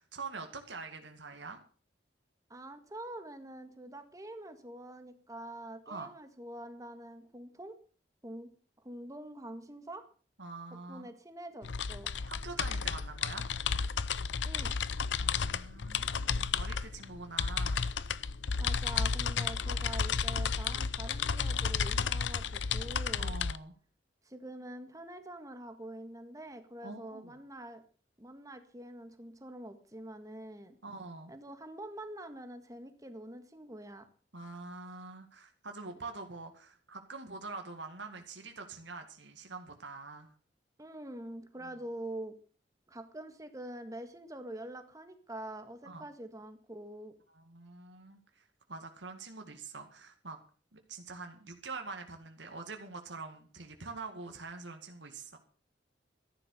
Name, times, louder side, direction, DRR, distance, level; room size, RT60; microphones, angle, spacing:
voice 1, 0.0-1.6 5.9-6.1 10.4-11.1 12.3-13.5 15.2-17.9 23.2-23.7 26.8-27.4 30.8-31.3 34.3-40.3 41.6-41.7 45.9-46.0 47.3-50.4 50.7-55.4, right 3 dB, 85° right, 5 dB, 2.1 m, -45 dB
voice 2, 2.5-7.8 8.2-8.5 8.8-10.0 10.9-12.1 14.4-14.7 18.6-23.4 24.2-27.8 28.2-30.8 31.3-34.1 40.8-42.3 42.9-47.2, right 1 dB, 20° right, 8 dB, 1.7 m, -45 dB
sound 1, 11.6-23.6, left 6 dB, 90° left, 0.7 m, -32 dB
14.0 x 11.0 x 6.5 m, 0.40 s
head